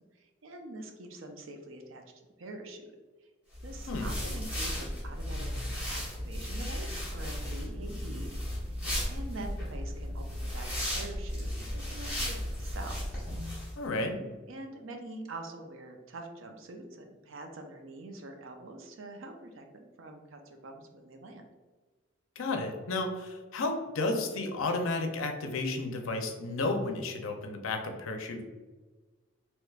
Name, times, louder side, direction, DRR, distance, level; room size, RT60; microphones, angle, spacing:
voice 1, 0.2-2.0 2.4-2.9 3.6-5.5 5.9-8.3 8.7-13.3 14.5-21.4, right 2 dB, 70° right, 4 dB, 0.5 m, -45 dB
sound 1, 3.5-13.7, equal, 5° right, 1.0 m, -35 dB
voice 2, 13.8-14.3 22.4-28.4, left 2 dB, 80° left, 4 dB, 0.5 m, -32 dB
3.3 x 3.0 x 2.3 m, 1.3 s
head